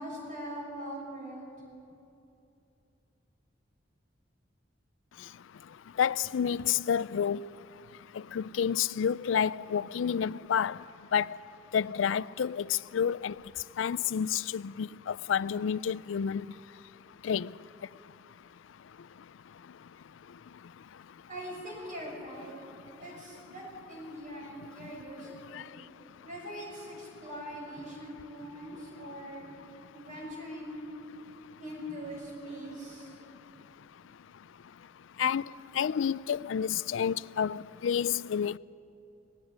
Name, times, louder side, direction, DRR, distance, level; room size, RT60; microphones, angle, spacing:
voice 1, 0.0-1.5 21.3-22.6 23.0-25.7 26.2-29.5 29.9-30.8 31.6-33.1, equal, 40° right, 6.4 m, -42 dB
voice 2, 6.0-7.4 8.1-10.8 11.1-11.4 11.7-13.4 13.8-16.5 17.2-17.5 25.5-25.6 35.2-35.4 35.7-38.6, left 8 dB, 85° left, 0.4 m, -29 dB
19.0 x 17.0 x 9.5 m
head